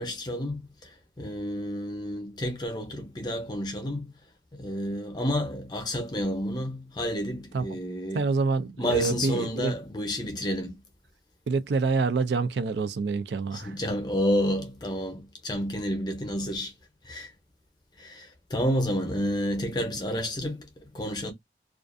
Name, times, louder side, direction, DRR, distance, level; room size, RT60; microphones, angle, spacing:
voice 1, 0.0-4.1 4.5-8.3 8.8-10.8 13.5-16.7 17.0-17.3 18.0-21.3, equal, 25° left, 0.7 m, -30 dB
voice 2, 8.1-9.7 11.5-13.7, right 4 dB, 70° right, 0.4 m, -26 dB
2.4 x 2.3 x 2.5 m
head